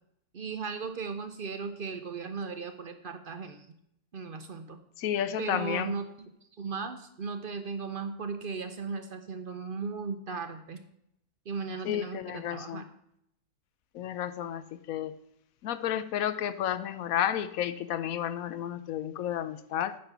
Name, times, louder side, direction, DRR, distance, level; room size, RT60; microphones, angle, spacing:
voice 1, 0.3-3.7 4.1-4.8 5.4-6.1 6.6-10.8 11.5-12.9, right 5 dB, 55° right, 8 dB, 0.6 m, -36 dB
voice 2, 5.0-6.0 11.8-12.8 13.9-15.1 15.6-20.0, left 10 dB, 70° left, 13 dB, 0.9 m, -32 dB
8.9 x 5.3 x 5.8 m, 0.76 s
omnidirectional pair, 1.6 m